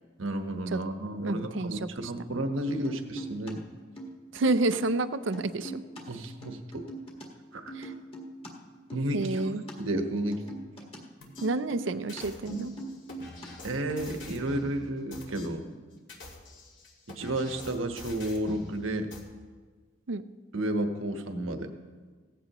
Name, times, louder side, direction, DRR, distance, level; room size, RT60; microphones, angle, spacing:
voice 1, 0.2-3.6 6.1-6.9 7.5-7.7 8.9-9.4 9.8-10.4 13.6-15.6 17.1-19.1 20.5-21.7, right 1 dB, 80° right, 5 dB, 1.2 m, -32 dB
voice 2, 1.2-2.1 4.3-5.8 7.7-7.9 9.1-9.6 11.4-12.7 20.1-20.2, right 2 dB, 65° right, 13 dB, 0.6 m, -29 dB
sound 1, 2.7-3.5 3.8-4.8 5.0-7.3 7.5-9.7 10.0-13.5 13.7-14.4, right 2 dB, 30° left, 1.8 m, -42 dB
sound 2, 11.2-11.5 12.1-14.7 15.1-15.5 16.0-18.7 19.1-19.2, left 2 dB, 65° left, 2.4 m, -46 dB
17.5 x 15.0 x 3.0 m, 1.4 s
head